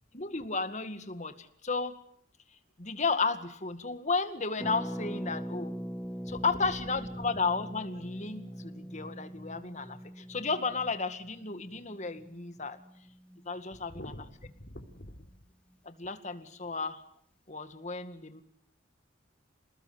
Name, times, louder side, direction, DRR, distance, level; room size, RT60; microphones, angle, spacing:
voice 1, 0.1-1.9 2.8-5.7 6.3-12.8 13.5-14.0 15.8-17.0 17.5-18.4, left 4 dB, 35° left, 9 dB, 2.1 m, -33 dB
Harp, 4.6-14.2 14.5-14.6 14.7-15.1, equal, 5° left, 1.0 m, -42 dB
voice 2, 13.7-15.3 17.6-17.7, left 1 dB, 50° left, 6 dB, 3.7 m, -47 dB
29.0 x 19.5 x 8.1 m, 0.65 s
head